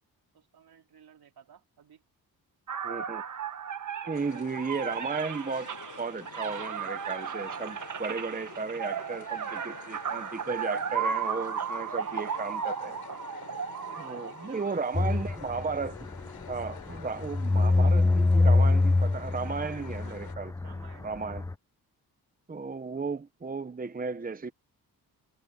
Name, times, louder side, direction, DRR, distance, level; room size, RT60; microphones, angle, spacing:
voice 1, 0.3-2.0 4.0-4.6 8.3-8.8 12.0-12.6 13.8-15.3 19.4-20.2 20.6-21.1, right 8 dB, 70° right, 4.0 m, -55 dB
sound 1, 2.7-15.0, right 7 dB, 50° right, 1.6 m, -35 dB
voice 2, 2.8-3.2 4.1-5.7 6.0-13.0 14.0-16.1 16.5-20.5 21.0-21.5 22.5-24.5, right 4 dB, 20° right, 1.0 m, -34 dB
sound 2, 4.1-20.3, left 8 dB, 65° left, 3.7 m, -49 dB
sound 3, 14.9-21.5, left 3 dB, 10° left, 0.4 m, -25 dB
cardioid pair, 75°, 38 cm